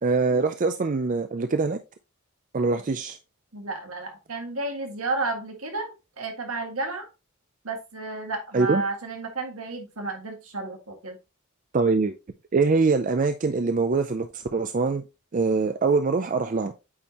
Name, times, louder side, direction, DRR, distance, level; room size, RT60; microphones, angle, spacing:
voice 1, 0.0-1.8 2.5-3.2 8.5-8.8 11.7-12.1 12.5-15.0 15.3-16.7, right 4 dB, 35° right, 0.4 m, -23 dB
voice 2, 3.5-7.1 7.6-11.2, right 3 dB, 75° right, 1.9 m, -32 dB
8.6 x 4.4 x 3.0 m
head